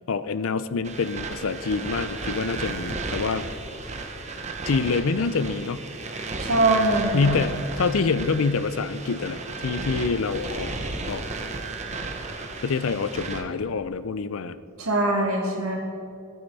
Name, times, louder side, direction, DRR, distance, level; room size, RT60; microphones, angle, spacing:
voice 1, 0.1-3.5 4.7-5.8 7.1-10.7 11.1-11.2 12.6-14.6, left 4 dB, 70° left, 14 dB, 0.5 m, -26 dB
sound 1, 0.8-13.4, right 3 dB, 35° right, 0.9 m, -34 dB
voice 2, 6.4-7.5 14.8-15.8, right 2 dB, 85° right, 0 dB, 2.1 m, -22 dB
15.5 x 8.7 x 4.1 m, 2.5 s
head